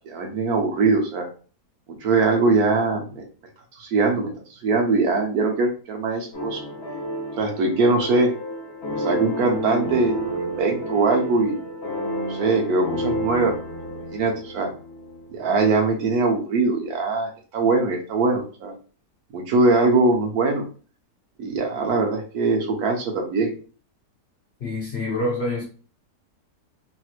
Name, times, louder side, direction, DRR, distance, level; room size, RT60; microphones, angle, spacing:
voice 1, 0.1-1.3 1.9-3.2 3.8-4.3 4.6-6.6 7.4-8.3 9.0-11.6 12.3-13.5 14.1-14.7 15.3-18.7 19.3-20.6 21.4-23.5, right 3 dB, 70° right, 1.2 m, -22 dB
sound 1, 6.3-15.4, equal, 40° left, 1.2 m, -30 dB
voice 2, 24.6-25.6, left 1 dB, 60° left, 0.6 m, -26 dB
3.1 x 2.9 x 2.4 m
omnidirectional pair, 1.8 m